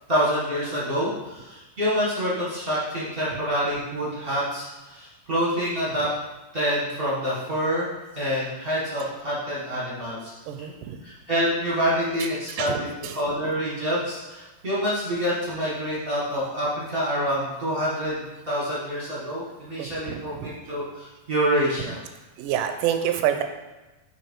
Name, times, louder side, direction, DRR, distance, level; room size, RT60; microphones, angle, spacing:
voice 1, 0.1-6.1 6.5-7.9 8.1-10.3 11.0-12.9 13.1-22.0, equal, 35° right, -8 dB, 0.9 m, -27 dB
voice 2, 10.5-10.9 12.5-13.2 19.8-20.5 22.4-23.4, right 10 dB, 80° right, 7 dB, 2.0 m, -27 dB
8.5 x 3.3 x 4.6 m, 1.1 s
omnidirectional pair, 4.0 m